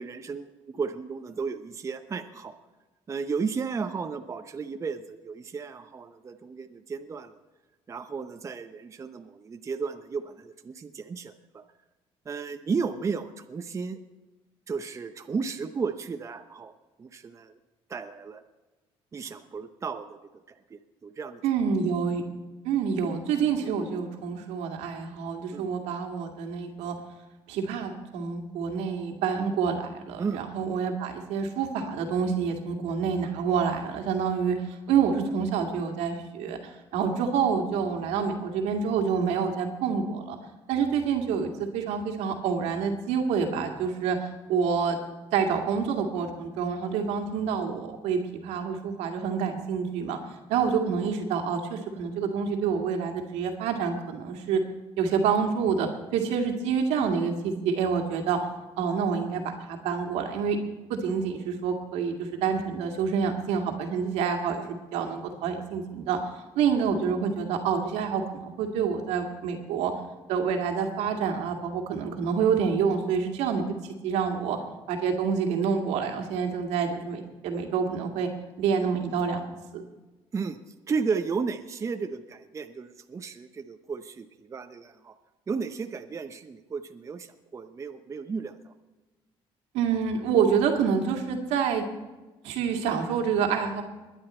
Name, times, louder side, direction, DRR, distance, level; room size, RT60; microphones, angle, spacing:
voice 1, 0.0-2.5 3.1-7.4 7.9-11.6 12.2-14.0 14.7-16.7 17.0-17.6 17.9-18.4 19.1-20.2 20.5-21.4 23.6-23.8 25.5-25.7 30.2-30.4 80.3-85.2 85.5-88.7, right 5 dB, 30° right, 7 dB, 0.7 m, -34 dB
voice 2, 21.4-22.2 22.6-26.9 27.5-34.6 34.9-40.4 40.7-44.2 44.5-45.0 45.3-50.2 50.5-54.6 55.0-58.4 58.8-60.6 60.9-66.2 66.6-69.9 70.3-74.6 74.9-78.3 78.6-79.4 79.7-79.8 89.7-91.8 92.4-93.8, right 6 dB, 90° right, 3 dB, 2.2 m, -27 dB
21.0 x 10.0 x 4.4 m, 1.2 s
cardioid pair, 115°, 11 cm